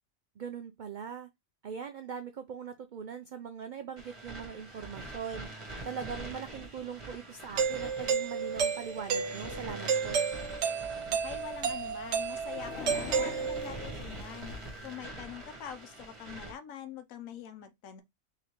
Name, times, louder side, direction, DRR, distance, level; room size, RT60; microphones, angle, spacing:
voice 1, 0.4-1.3 1.6-5.5 5.8-10.2, right 7 dB, 85° right, 0.4 m, -41 dB
sound 1, 4.0-16.5, right 2 dB, 25° right, 1.2 m, -45 dB
Doorbell, 7.6-13.9, right 6 dB, 65° right, 0.9 m, -32 dB
voice 2, 11.1-14.5 14.8-18.0, left 8 dB, 80° left, 1.1 m, -44 dB
sound 2, 11.1-14.9, left 6 dB, 55° left, 1.0 m, -45 dB
3.7 x 3.3 x 3.0 m
omnidirectional pair, 1.4 m